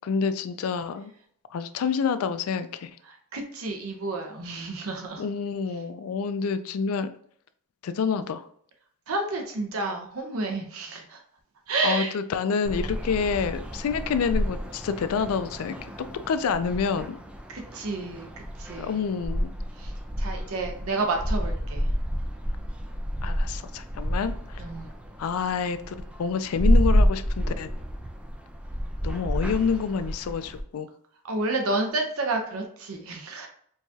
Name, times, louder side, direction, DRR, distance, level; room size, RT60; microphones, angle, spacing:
voice 1, 0.0-1.1 1.5-2.9 5.2-7.1 7.8-8.4 11.8-15.8 16.3-17.1 18.8-19.5 23.2-24.6 25.2-27.7 29.0-30.9, left 6 dB, 75° left, 11 dB, 0.3 m, -28 dB
voice 2, 3.1-5.2 9.1-11.2 11.7-12.1 17.5-19.0 19.8-19.9 20.2-21.9 24.6-24.9 31.3-33.5, right 3 dB, 65° right, 3 dB, 0.6 m, -30 dB
sound 1, 12.6-30.6, equal, 5° right, 0.4 m, -29 dB
4.6 x 2.3 x 2.7 m, 0.62 s
head